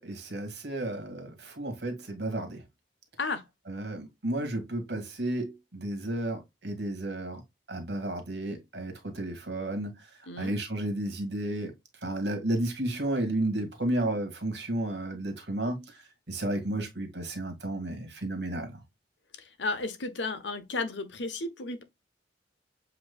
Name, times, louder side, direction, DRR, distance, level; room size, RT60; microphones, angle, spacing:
voice 1, 0.0-2.6 3.7-7.4 7.7-10.0 10.4-11.7 12.0-16.0 16.3-18.8, right 1 dB, 70° right, 2.0 m, -32 dB
voice 2, 19.4-21.8, left 3 dB, 90° left, 0.9 m, -33 dB
7.6 x 3.0 x 2.3 m
head